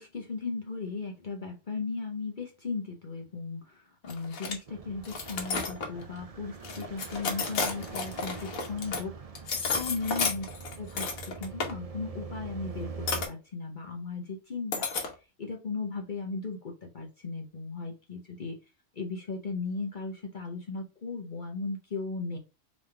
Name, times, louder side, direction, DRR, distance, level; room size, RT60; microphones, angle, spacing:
voice 1, 0.0-9.1 9.4-10.4 10.8-14.9 15.4-18.6 19.0-22.4, left 4 dB, 40° left, 2 dB, 0.9 m, -36 dB
sound 1, 4.0-4.5 5.0-6.1 6.6-9.0 9.4-11.7 13.1-13.3 14.7-15.1, left 4 dB, 80° left, 1.5 m, -32 dB
sound 2, 4.7-13.3, right 5 dB, 45° right, 0.4 m, -43 dB
3.8 x 3.5 x 3.3 m, 0.28 s
omnidirectional pair, 1.4 m